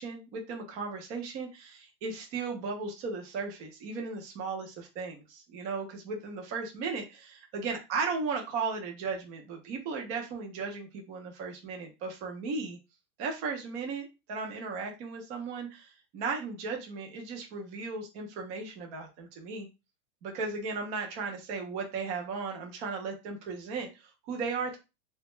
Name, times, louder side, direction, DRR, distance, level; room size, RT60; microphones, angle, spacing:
voice 1, 0.0-12.8 13.2-19.7 20.2-24.8, right 4 dB, 20° right, 2 dB, 0.4 m, -36 dB
3.4 x 2.2 x 2.9 m, 0.27 s
supercardioid pair, 180°, 34 cm